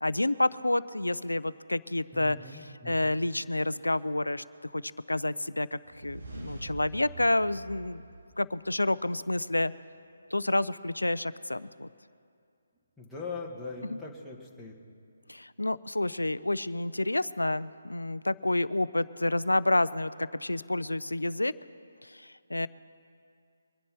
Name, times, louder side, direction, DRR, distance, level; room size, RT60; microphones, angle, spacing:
voice 1, 0.0-4.4 4.7-8.0 8.4-9.7 10.3-11.9 13.9-14.0 15.3-21.5 22.1-22.7, left 2 dB, 90° left, 16 dB, 0.5 m, -29 dB
voice 2, 2.1-3.2 13.0-14.8, left 4 dB, ahead, -6 dB, 1.9 m, -41 dB
sound 1, 5.8-8.8, right 2 dB, 65° right, 2.5 m, -45 dB
24.0 x 10.5 x 4.5 m, 2.3 s
figure-of-eight pair, 145°, 0 cm